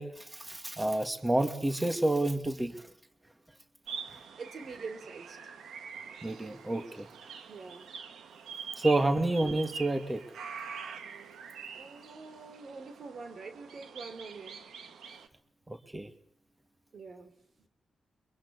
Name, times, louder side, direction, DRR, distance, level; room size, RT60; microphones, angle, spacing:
voice 1, 0.0-2.8 6.2-7.1 8.8-10.2 15.7-16.1, right 2 dB, 20° right, 8 dB, 2.6 m, -29 dB
sound 1, 3.9-15.3, right 6 dB, 80° right, 1.7 m, -45 dB
voice 2, 4.4-5.4 7.5-7.8 11.7-14.7 16.9-17.3 17.6-17.7, right 4 dB, 65° right, 8 dB, 3.3 m, -45 dB
24.0 x 23.0 x 8.6 m, 0.66 s
cardioid pair, 55°, 0 cm